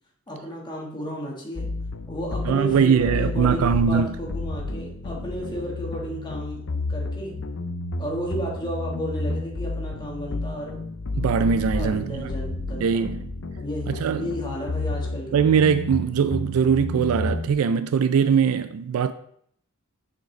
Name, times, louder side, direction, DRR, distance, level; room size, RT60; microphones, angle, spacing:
voice 1, 0.3-1.7 2.1-7.4 8.0-10.8 11.7-13.1 13.6-15.4, equal, 20° left, 1.3 m, -33 dB
sound 1, 1.6-17.5, left 2 dB, 65° left, 0.6 m, -31 dB
voice 2, 2.5-4.2 11.1-12.3 12.8-13.2 13.9-14.3 15.3-19.1, right 7 dB, 85° right, 0.3 m, -21 dB
6.6 x 5.2 x 3.1 m
head